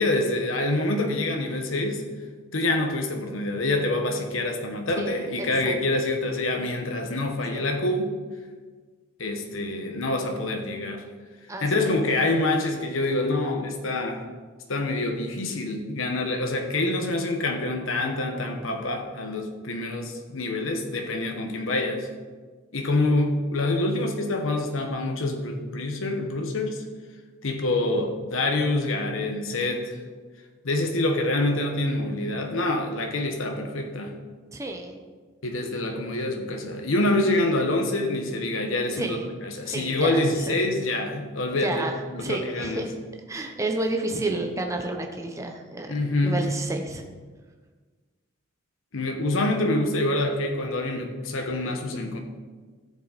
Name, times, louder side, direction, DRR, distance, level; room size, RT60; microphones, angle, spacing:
voice 1, 0.0-2.0 2.5-8.1 9.2-11.1 11.6-14.2 14.7-22.1 22.7-26.8 27.4-30.0 30.6-34.1 35.4-39.2 39.4-42.8 45.9-46.5 48.9-52.2, left 2 dB, 90° left, 3 dB, 1.1 m, -26 dB
voice 2, 5.0-5.8 7.5-7.7 11.5-11.6 34.5-35.0 39.0-39.3 39.6-40.6 41.6-41.9 42.2-42.9 43.3-45.9 46.2-47.1, right 2 dB, 15° right, 3 dB, 0.8 m, -31 dB
13.5 x 7.4 x 4.1 m, 1.5 s
head